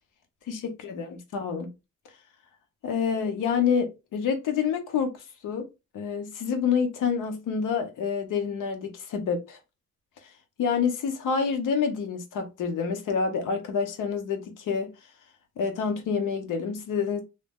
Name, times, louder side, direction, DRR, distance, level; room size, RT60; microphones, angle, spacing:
voice 1, 0.5-1.7 2.8-5.7 5.9-9.6 10.6-14.9 15.6-17.2, left 6 dB, 90° left, 0.8 m, -28 dB
2.7 x 2.1 x 3.4 m
cardioid pair, 150°, 30 cm